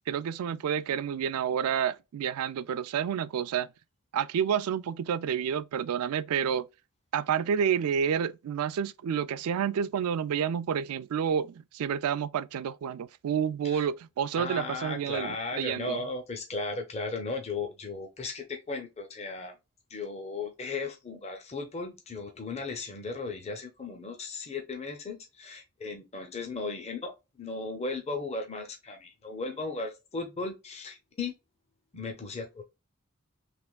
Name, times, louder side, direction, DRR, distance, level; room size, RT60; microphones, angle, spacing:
voice 1, 0.1-3.7 4.1-6.7 7.1-16.0, right 8 dB, 85° right, 0.3 m, -29 dB
voice 2, 14.4-19.5 19.9-31.3 31.9-32.6, left 3 dB, 30° left, 0.6 m, -36 dB
3.3 x 3.0 x 2.3 m
head